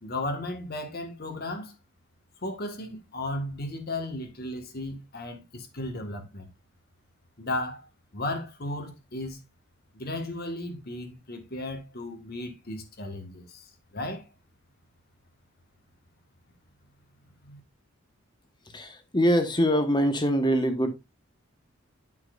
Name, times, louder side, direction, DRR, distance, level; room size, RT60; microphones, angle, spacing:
voice 1, 0.0-1.7 2.4-6.5 7.4-7.8 8.1-9.4 9.9-14.3 17.4-17.6, left 1 dB, 45° left, 1.6 m, -35 dB
voice 2, 18.7-20.9, equal, 20° left, 1.2 m, -24 dB
10.0 x 5.8 x 2.5 m
head